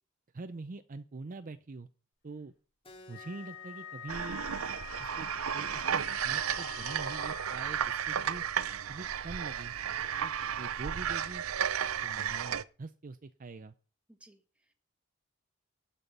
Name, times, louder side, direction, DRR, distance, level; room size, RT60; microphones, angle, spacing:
voice 1, 0.3-1.9 2.2-2.5 3.1-4.4 5.0-8.4 8.9-9.7 10.2-11.4 12.0-13.7, right 3 dB, 40° right, 12 dB, 0.5 m, -44 dB
Keyboard (musical), 2.8-7.9, left 2 dB, 25° left, 2.2 m, -60 dB
Wind instrument woodwind instrument, 3.1-7.8, left 7 dB, 55° left, 4.8 m, -46 dB
sound 1, 4.1-12.6, right 8 dB, 90° right, 0.6 m, -33 dB
voice 2, 14.1-14.7, right 1 dB, 5° right, 6 dB, 1.5 m, -60 dB
12.5 x 5.7 x 8.0 m, 0.38 s
head